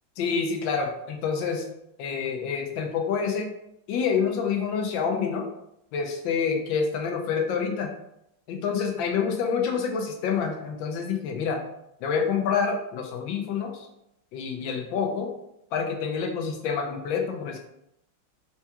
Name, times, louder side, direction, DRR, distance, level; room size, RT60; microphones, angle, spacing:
voice 1, 0.2-1.7 2.0-3.5 3.9-5.5 5.9-7.9 8.5-11.6 12.0-13.9 14.3-15.3 15.7-17.6, left 6 dB, 75° left, 2 dB, 1.2 m, -27 dB
4.5 x 2.3 x 2.8 m, 0.80 s
omnidirectional pair, 2.3 m